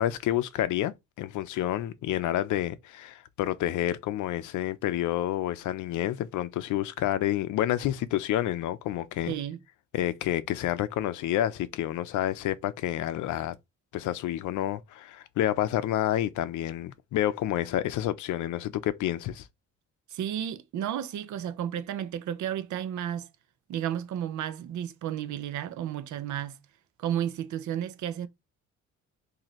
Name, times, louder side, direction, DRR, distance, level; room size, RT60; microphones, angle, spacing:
voice 1, 0.0-9.3 9.9-13.6 13.9-19.5, left 13 dB, 80° left, 0.6 m, -29 dB
voice 2, 9.3-9.6 20.1-23.3 23.7-26.6 27.0-28.3, right 10 dB, 70° right, 0.7 m, -32 dB
2.9 x 2.7 x 4.0 m
cardioid pair, 90°, 30 cm